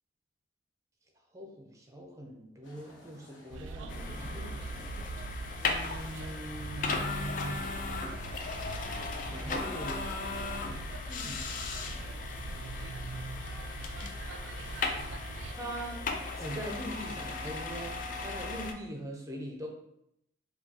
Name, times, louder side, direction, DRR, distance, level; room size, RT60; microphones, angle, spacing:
voice 1, 1.3-4.6 5.6-7.7 9.3-12.0 15.5-16.1 16.4-19.7, right 1 dB, 15° right, 1 dB, 0.6 m, -42 dB
sound 1, 2.6-10.0, left 1 dB, 85° left, 0.9 m, -54 dB
sound 2, 3.5-15.5, right 4 dB, 85° right, 0.3 m, -43 dB
sound 3, 3.9-18.7, left 3 dB, 45° left, 0.3 m, -37 dB
4.5 x 2.3 x 2.7 m, 0.78 s
head